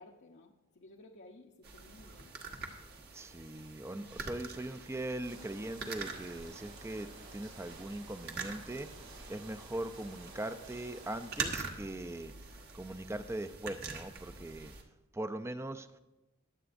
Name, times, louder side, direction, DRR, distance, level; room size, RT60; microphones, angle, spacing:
voice 1, 0.0-2.3, left 2 dB, 60° left, -1 dB, 0.8 m, -56 dB
sound 1, 1.6-14.8, right 4 dB, 55° right, 1.3 m, -45 dB
voice 2, 3.1-12.3 12.7-14.7 15.1-16.0, right 1 dB, 15° right, 11 dB, 0.5 m, -41 dB
sound 2, 5.2-11.6, right 3 dB, 85° right, 3.8 m, -53 dB
22.0 x 7.9 x 2.6 m, 1.0 s
head